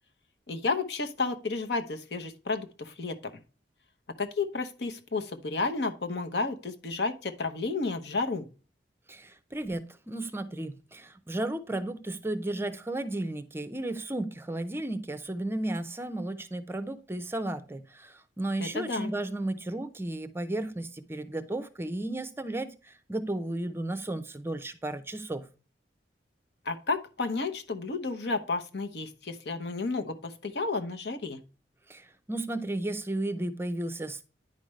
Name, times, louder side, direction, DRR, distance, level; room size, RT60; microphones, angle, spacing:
voice 1, 0.5-3.2 4.2-8.5 18.6-19.1 26.6-31.4, left 3 dB, 65° left, 1.0 m, -32 dB
voice 2, 9.1-25.5 31.9-34.2, right 1 dB, 15° right, 0.5 m, -34 dB
9.9 x 5.1 x 3.2 m
head